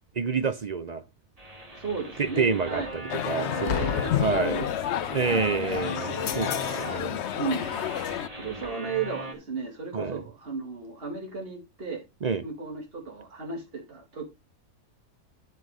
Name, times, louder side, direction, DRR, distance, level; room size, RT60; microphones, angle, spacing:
voice 1, 0.1-1.0 2.2-4.7 5.1-7.2 9.9-10.2 12.2-12.4, right 5 dB, 60° right, 0.4 m, -28 dB
sound 1, 1.4-9.3, right 1 dB, 25° right, 3.0 m, -39 dB
voice 2, 1.7-3.0 3.6-5.6 7.3-7.8 8.3-12.0 12.4-14.3, right 4 dB, 40° right, 2.6 m, -35 dB
sound 2, 3.1-8.3, left 10 dB, 60° left, 0.7 m, -30 dB
Boom, 3.7-5.4 6.3-6.6, left 8 dB, 90° left, 1.3 m, -33 dB
12.0 x 4.5 x 4.8 m
omnidirectional pair, 1.6 m